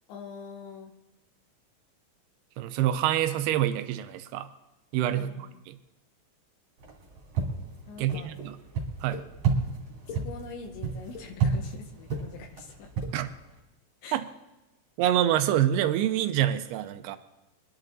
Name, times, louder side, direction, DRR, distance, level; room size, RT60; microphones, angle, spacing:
voice 1, 0.1-0.9 5.1-5.7 7.9-8.3 10.1-12.9 14.0-14.2, left 5 dB, 80° left, 2 dB, 3.5 m, -44 dB
voice 2, 2.6-4.5 4.9-5.8 8.0-8.6 9.0-9.2 13.1-13.3 14.1-14.3 15.0-17.2, right 12 dB, 85° right, 10 dB, 2.3 m, -26 dB
Footstep Loop, 6.8-13.6, right 5 dB, 35° right, 3.2 m, -32 dB
Olive oil bottle pop, 8.1-8.2 9.1-9.2 9.9-10.2 10.9-11.3 11.9-12.2 12.9-13.1, left 5 dB, 25° left, 2.7 m, -42 dB
24.5 x 11.0 x 4.0 m, 1.0 s
omnidirectional pair, 5.2 m